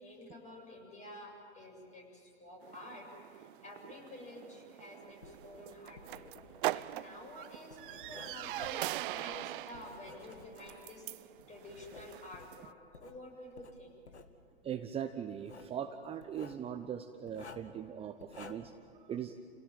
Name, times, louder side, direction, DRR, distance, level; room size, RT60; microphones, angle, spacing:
voice 1, 0.0-6.2 6.7-11.1 11.5-12.7 13.0-14.0, left 1 dB, 20° left, 2 dB, 7.6 m, -50 dB
sound 1, 2.6-12.7, right 16 dB, 50° right, 0.6 m, -42 dB
Writing, 5.1-10.9 11.4-13.2 13.5-14.3 15.3-15.8 16.2-16.6 17.3-17.8 18.2-18.8, left 4 dB, 90° left, 1.9 m, -53 dB
voice 2, 14.6-18.7 19.0-19.4, right 9 dB, 20° right, 7 dB, 0.8 m, -40 dB
29.5 x 17.5 x 9.1 m, 2.6 s
hypercardioid pair, 115°, 33 cm